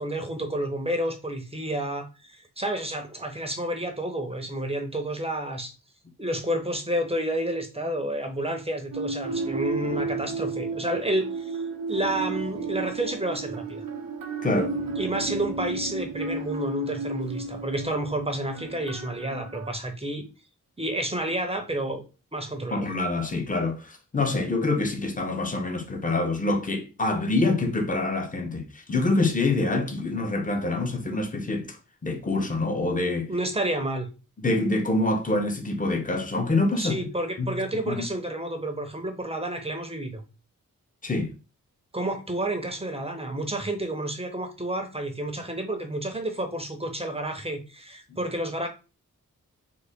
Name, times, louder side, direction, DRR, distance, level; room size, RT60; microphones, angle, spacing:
voice 1, 0.0-5.7 6.2-11.6 11.9-13.9 15.0-20.3 20.8-22.0 22.3-22.8 33.3-34.1 36.8-40.2 41.9-48.7, right 1 dB, 15° right, 0.7 m, -30 dB
sound 1, 8.9-19.7, right 3 dB, 85° right, 0.7 m, -33 dB
voice 2, 14.4-14.7 22.7-31.8 32.0-33.3 34.4-37.0 37.4-37.5 37.9-38.0 41.0-41.3 48.1-48.2, left 2 dB, 25° left, 0.8 m, -26 dB
3.9 x 2.1 x 3.5 m
cardioid pair, 65°, 34 cm